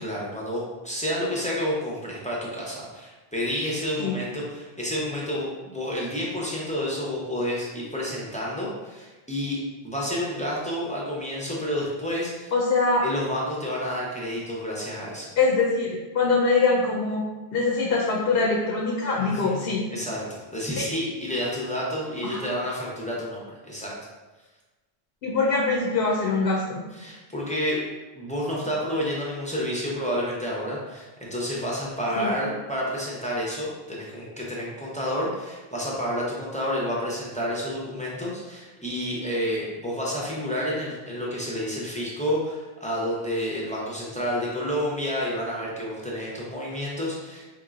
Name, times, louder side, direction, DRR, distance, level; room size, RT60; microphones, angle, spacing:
voice 1, 0.0-9.6 9.8-12.5 13.0-15.3 19.2-19.6 19.9-20.2 20.5-23.9 26.9-27.8 28.1-47.4, equal, 10° left, -5 dB, 0.6 m, -30 dB
voice 2, 12.5-13.0 15.4-17.2 17.5-19.9 20.8-20.9 22.2-22.5 25.2-26.8 32.2-32.3, left 3 dB, 70° left, -2 dB, 0.8 m, -23 dB
4.4 x 2.9 x 2.4 m, 1.2 s
omnidirectional pair, 1.1 m